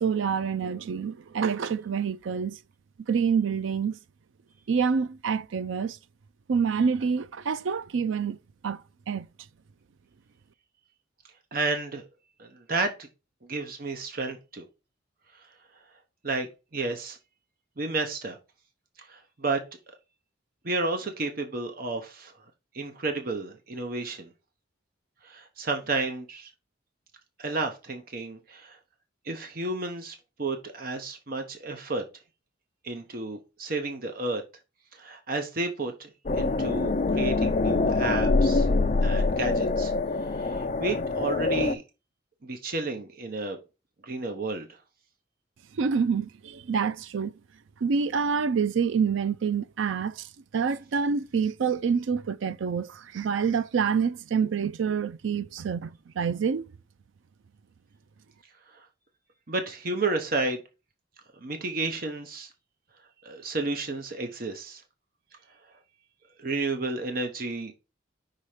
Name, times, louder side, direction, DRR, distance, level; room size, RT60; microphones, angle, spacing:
voice 1, 0.0-2.6 3.1-4.0 4.7-6.0 6.5-8.4 8.6-9.3 45.7-47.3 47.8-50.3 50.5-56.7, right 6 dB, 80° right, 0.4 m, -27 dB
voice 2, 11.5-12.0 12.4-13.1 13.4-14.7 16.2-17.2 17.8-18.4 19.0-19.6 20.6-22.3 22.7-24.3 25.2-26.5 27.4-28.8 29.2-32.0 32.8-34.4 34.9-38.7 39.0-39.9 40.4-41.8 42.4-43.6 44.0-44.8 58.7-58.8 59.5-60.6 61.4-62.5 63.2-64.8 66.4-67.7, right 3 dB, 45° right, 0.8 m, -31 dB
sound 1, 36.3-41.8, left 3 dB, 35° left, 0.5 m, -25 dB
5.8 x 4.0 x 4.9 m
head